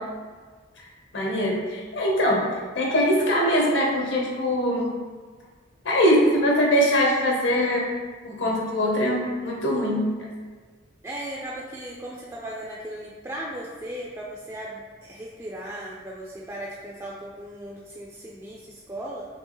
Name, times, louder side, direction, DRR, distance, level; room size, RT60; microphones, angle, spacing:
voice 1, 1.1-2.4 2.7-4.9 5.8-7.8 8.2-10.0, equal, 65° left, -2 dB, 1.0 m, -22 dB
voice 2, 11.0-19.3, right 1 dB, 15° right, -4 dB, 0.3 m, -37 dB
4.5 x 3.1 x 3.0 m, 1.5 s
head